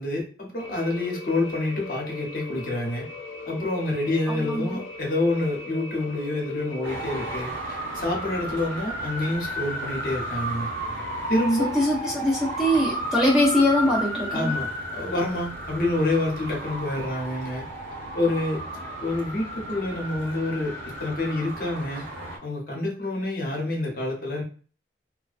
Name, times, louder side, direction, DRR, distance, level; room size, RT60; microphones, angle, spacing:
voice 1, 0.0-3.1 3.5-10.7 11.3-11.8 14.3-17.6 18.1-18.6 19.0-20.7 21.0-22.0 22.4-24.4, left 2 dB, 50° left, -1 dB, 0.7 m, -27 dB
sound 1, 0.6-7.4, left 3 dB, 80° left, 0.4 m, -39 dB
voice 2, 4.3-4.8 11.6-14.5, left 1 dB, 5° right, -3 dB, 0.4 m, -22 dB
Traffic noise roadway noise, 6.8-22.4, right 1 dB, 85° right, 0.8 m, -33 dB
2.4 x 2.1 x 2.4 m, 0.41 s
head